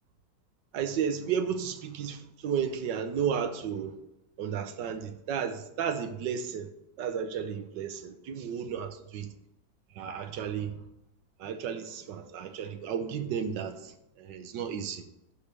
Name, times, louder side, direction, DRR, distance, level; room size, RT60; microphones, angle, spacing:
voice 1, 0.7-3.9 4.4-6.7 7.0-9.3 10.0-10.8 11.4-13.9 14.2-15.0, right 7 dB, 70° right, 1.4 m, -33 dB
11.5 x 5.1 x 6.7 m
omnidirectional pair, 2.1 m